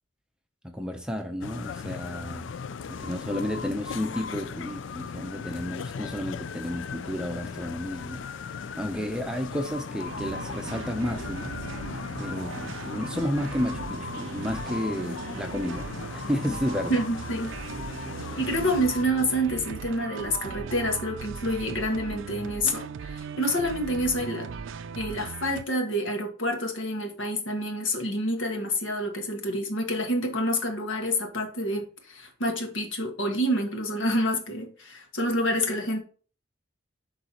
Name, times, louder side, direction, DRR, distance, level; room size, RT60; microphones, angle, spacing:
voice 1, 0.6-2.5 2.9-8.5 8.8-11.6 12.2-17.0, equal, 5° right, 0.6 m, -32 dB
sound 1, 1.4-19.0, left 6 dB, 75° left, 0.4 m, -37 dB
sound 2, 10.0-25.6, right 5 dB, 85° right, 0.4 m, -38 dB
voice 2, 16.9-17.5 18.4-24.5 24.9-36.0, equal, 90° left, 1.7 m, -28 dB
11.0 x 3.9 x 2.9 m
head